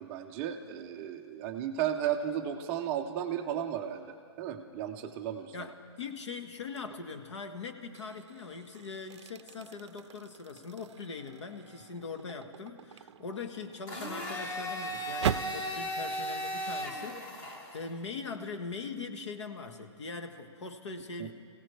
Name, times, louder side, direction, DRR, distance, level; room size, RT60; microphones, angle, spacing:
voice 1, 0.0-5.5 21.2-21.3, right 10 dB, 15° right, 5 dB, 0.4 m, -34 dB
voice 2, 5.5-21.3, left 4 dB, 90° left, 7 dB, 1.3 m, -41 dB
sound 1, 6.7-7.1 7.6-15.7, right 9 dB, 80° right, 0.4 m, -41 dB
Domestic sounds home sounds, 13.9-17.9, equal, 20° left, 1.3 m, -36 dB
25.5 x 16.5 x 3.2 m, 2.4 s
hypercardioid pair, 170°, 14 cm